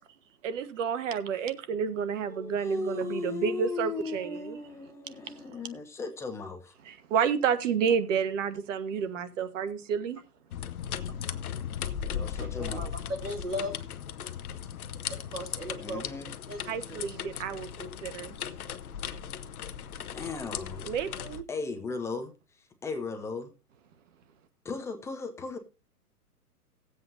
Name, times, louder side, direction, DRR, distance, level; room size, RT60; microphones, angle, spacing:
voice 1, 0.4-4.6 6.9-10.2 16.7-18.3 20.8-21.4, right 7 dB, 55° right, 1.2 m, -30 dB
voice 2, 2.3-6.7 12.1-12.9 15.8-16.3 20.1-20.9 21.5-22.3 22.6-23.5 24.6-25.6, left 4 dB, 5° left, 0.5 m, -36 dB
sound 1, 10.5-21.4, left 8 dB, 70° left, 0.8 m, -37 dB
voice 3, 11.3-11.7 12.6-13.8 15.1-16.0 16.5-17.2, equal, 80° right, 2.5 m, -38 dB
18.5 x 7.9 x 2.6 m
hypercardioid pair, 120°, 45 cm